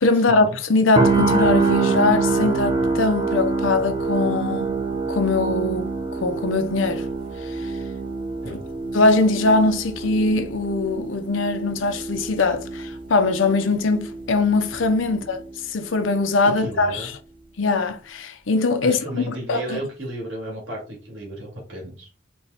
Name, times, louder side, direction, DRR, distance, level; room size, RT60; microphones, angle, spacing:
voice 1, 0.0-4.7 5.1-5.9 6.2-7.0 8.5-8.6 8.9-15.4 15.7-17.2 17.6-19.8, left 3 dB, 80° left, 0.7 m, -21 dB
sound 1, 0.9-14.9 15.3-15.5, right 4 dB, 25° right, 0.8 m, -25 dB
voice 2, 16.4-17.1 18.8-22.1, right 1 dB, 70° right, 2.5 m, -33 dB
4.5 x 2.3 x 4.1 m
head